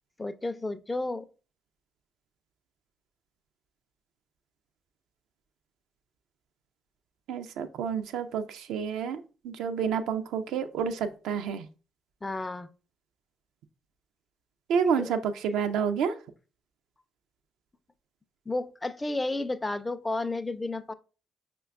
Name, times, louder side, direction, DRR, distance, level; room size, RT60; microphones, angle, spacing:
voice 1, 0.2-1.3 12.2-12.7 15.0-15.1 18.5-20.9, left 2 dB, 20° left, 0.3 m, -32 dB
voice 2, 7.3-9.2 9.4-11.7 14.7-16.1, right 7 dB, 75° right, 0.3 m, -29 dB
4.9 x 2.2 x 2.3 m
hypercardioid pair, 50°, 0 cm